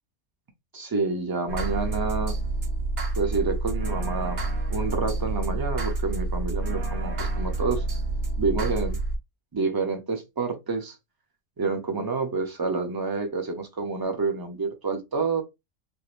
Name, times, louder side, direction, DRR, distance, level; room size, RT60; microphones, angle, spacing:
voice 1, 0.7-2.4 3.2-4.4 4.7-7.8 8.4-9.0 9.5-11.0 11.6-15.4, right 4 dB, 30° right, 0.4 m, -28 dB
sound 1, 1.5-9.2, right 2 dB, 45° right, 0.9 m, -28 dB
3.1 x 2.6 x 2.4 m
omnidirectional pair, 1.4 m